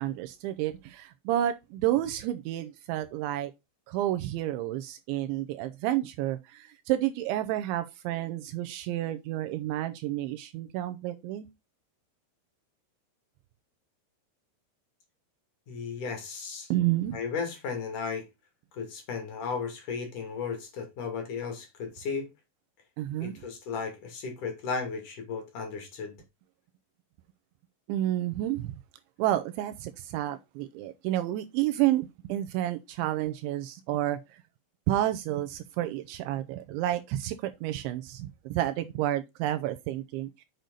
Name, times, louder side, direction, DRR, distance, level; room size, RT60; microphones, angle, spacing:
voice 1, 0.0-3.5 3.9-11.5 16.7-17.2 23.0-23.4 27.9-28.8 29.2-34.4 34.9-40.4, right 13 dB, 85° right, 2.8 m, -30 dB
voice 2, 15.7-16.7 17.1-18.3 18.7-22.3 23.2-26.2, left 5 dB, 50° left, 3.2 m, -35 dB
7.7 x 6.7 x 4.0 m
omnidirectional pair, 5.7 m